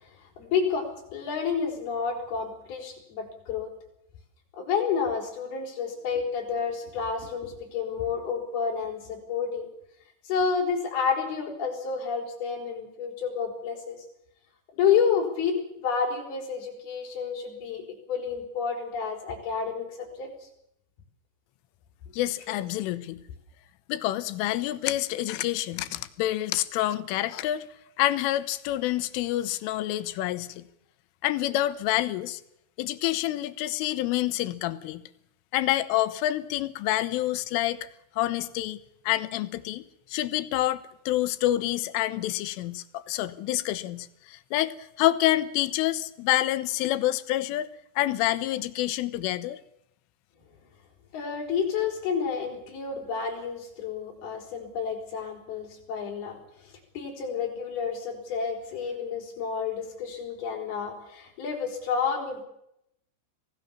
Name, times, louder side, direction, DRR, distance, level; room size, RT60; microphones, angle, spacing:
voice 1, 0.0-3.7 4.5-9.7 10.2-14.0 14.7-17.8 18.1-20.3 51.1-62.4, left 6 dB, 50° left, 0 dB, 6.5 m, -30 dB
voice 2, 22.1-23.2 23.9-27.7 28.0-30.6 31.2-32.4 32.8-35.0 35.5-37.8 38.2-38.8 39.1-39.8 40.1-49.6, left 15 dB, 85° left, 13 dB, 3.5 m, -27 dB
26.0 x 17.5 x 7.2 m, 0.79 s
omnidirectional pair, 5.6 m